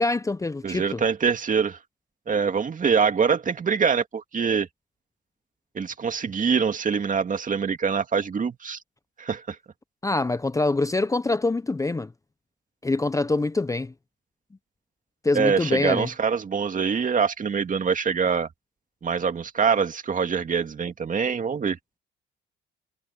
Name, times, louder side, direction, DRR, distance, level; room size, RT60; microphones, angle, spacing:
voice 1, 0.0-1.0 10.0-12.1 12.8-13.9 15.2-16.1, left 3 dB, 15° left, 0.7 m, -24 dB
voice 2, 0.6-1.8 2.3-4.7 5.7-8.8 9.2-9.6 15.3-18.5 19.0-21.8, right 6 dB, 40° right, 2.4 m, -24 dB
supercardioid pair, 75°, 20 cm